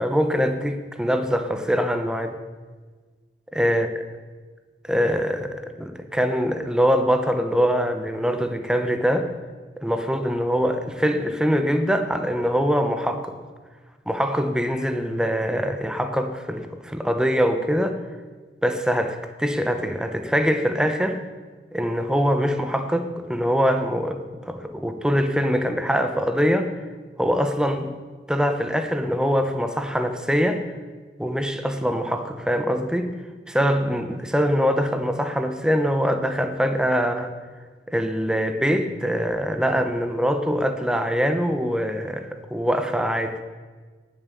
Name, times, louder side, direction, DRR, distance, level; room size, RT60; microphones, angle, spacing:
voice 1, 0.0-2.4 3.5-3.9 4.9-9.3 9.8-13.3 14.1-18.0 18.6-21.2 21.7-26.7 27.2-27.9 28.3-30.6 31.2-33.1 33.5-37.3 37.9-43.4, equal, 5° right, 7 dB, 0.9 m, -23 dB
18.5 x 7.4 x 7.0 m, 1.4 s
head